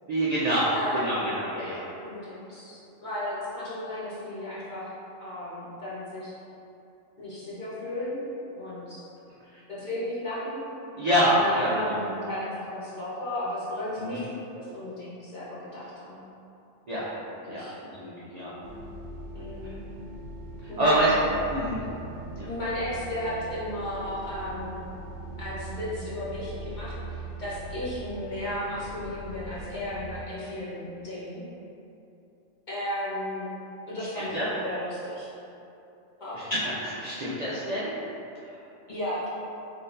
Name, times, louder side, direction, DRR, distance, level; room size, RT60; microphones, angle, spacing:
voice 1, 0.1-1.9 9.5-9.6 10.9-11.9 14.0-14.2 16.9-17.1 17.5-18.5 19.6-19.7 20.6-21.1 21.5-21.8 22.4-22.5 34.1-34.5 36.3-37.9, right 1 dB, 65° right, -7 dB, 0.4 m, -27 dB
voice 2, 0.7-1.3 2.0-4.9 5.2-6.3 7.2-9.0 9.7-10.6 11.2-16.2 17.5-17.8 19.3-19.7 20.7-21.1 22.5-24.8 25.4-31.4 32.7-33.5 33.9-35.3 36.2-36.4 38.9-39.3, left 1 dB, 40° left, -10 dB, 1.1 m, -34 dB
sound 1, 18.6-30.2, right 2 dB, 85° right, 1.0 m, -40 dB
4.2 x 3.3 x 2.6 m, 2.8 s
omnidirectional pair, 1.4 m